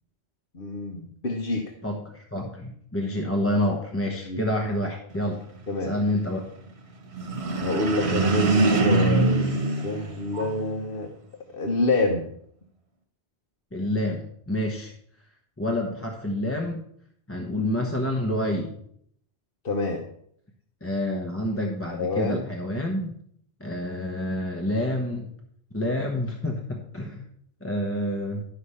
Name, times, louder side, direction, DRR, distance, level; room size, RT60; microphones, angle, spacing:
voice 1, 0.5-1.6 4.2-4.4 5.7-5.9 7.6-11.1 11.5-12.3 19.6-20.0 21.9-22.4, left 2 dB, 60° left, 2 dB, 1.2 m, -27 dB
voice 2, 1.8-5.4 5.8-6.4 13.7-14.9 15.6-16.8 17.3-18.8 20.8-23.1 23.6-25.3 25.7-27.2 27.6-28.5, left 1 dB, 15° left, 1 dB, 1.0 m, -28 dB
sound 1, 7.1-10.7, right 3 dB, 75° right, 1.5 m, -23 dB
12.0 x 4.9 x 5.6 m, 0.67 s
omnidirectional pair, 1.1 m